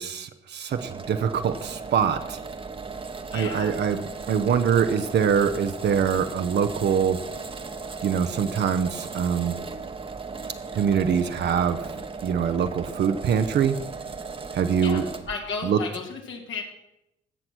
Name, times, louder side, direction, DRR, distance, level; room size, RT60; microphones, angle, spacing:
voice 1, 0.0-2.4 3.3-7.2 8.0-9.5 10.7-11.9 12.2-13.8 14.5-15.1 15.6-15.8, right 7 dB, 60° right, 8 dB, 0.8 m, -24 dB
sound 1, 0.7-15.4, right 4 dB, 25° right, 1.0 m, -36 dB
voice 2, 3.3-3.8 14.8-16.6, left 4 dB, 75° left, 1 dB, 2.3 m, -34 dB
16.0 x 6.0 x 6.1 m, 0.85 s
cardioid pair, 90°, 20 cm